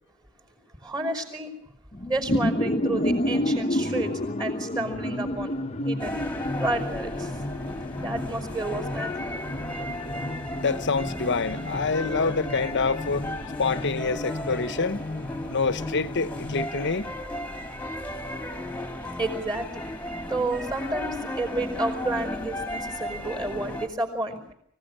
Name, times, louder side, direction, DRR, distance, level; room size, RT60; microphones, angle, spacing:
voice 1, 0.8-1.5 2.0-5.5 5.8-6.2 6.6-7.3 8.0-9.4 19.2-19.9 20.3-24.5, right 2 dB, 20° right, 4.8 m, -31 dB
sound 1, 1.9-16.7, left 1 dB, 30° left, 1.0 m, -31 dB
sound 2, 6.0-23.9, left 1 dB, 5° left, 2.0 m, -35 dB
voice 2, 10.6-13.3 13.6-15.1 15.5-17.1, left 4 dB, 55° left, 1.0 m, -26 dB
24.5 x 16.5 x 9.0 m
head